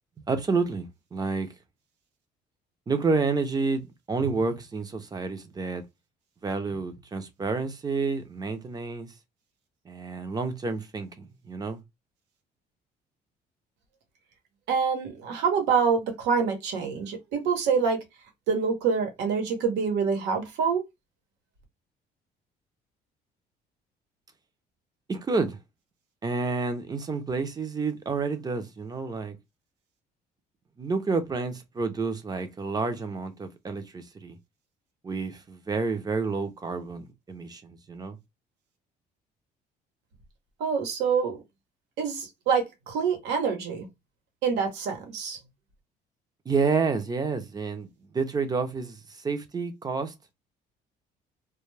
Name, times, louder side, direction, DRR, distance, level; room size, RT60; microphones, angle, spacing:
voice 1, 0.3-1.5 2.9-5.8 6.4-9.1 9.9-11.8 25.1-25.6 26.2-29.4 30.8-34.4 35.0-38.2 46.5-47.9 48.1-50.1, right 4 dB, 25° right, 0.6 m, -29 dB
voice 2, 14.7-18.0 18.5-20.8 40.6-41.4 42.0-43.9 44.4-45.4, right 6 dB, 90° right, 1.0 m, -26 dB
2.2 x 2.2 x 3.2 m
cardioid pair, 110°, 17 cm